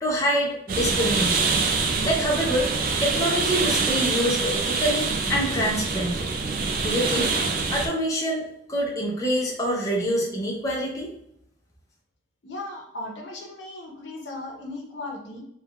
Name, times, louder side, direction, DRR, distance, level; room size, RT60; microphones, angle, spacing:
voice 1, 0.0-1.6 2.0-2.7 3.0-6.3 6.8-7.3 7.7-11.1, equal, 20° left, -2 dB, 0.4 m, -26 dB
sound 1, 0.7-7.9, right 4 dB, 50° right, 0.3 m, -25 dB
voice 2, 12.4-15.4, left 2 dB, 80° left, 0 dB, 0.7 m, -37 dB
3.2 x 2.2 x 2.2 m, 0.76 s
head